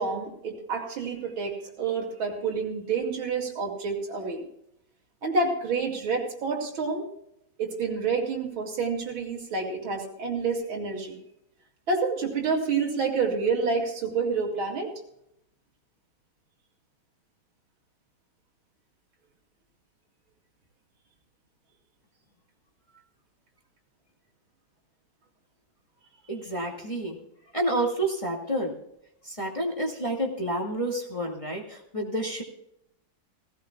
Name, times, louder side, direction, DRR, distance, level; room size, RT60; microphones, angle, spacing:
voice 1, 0.0-4.4 5.2-7.1 7.6-11.2 11.9-14.9, right 4 dB, 75° right, 2 dB, 3.2 m, -28 dB
voice 2, 26.3-27.2 27.5-28.7 29.2-32.4, right 1 dB, 15° left, -1 dB, 2.0 m, -29 dB
18.0 x 16.5 x 2.3 m, 0.79 s
omnidirectional pair, 2.2 m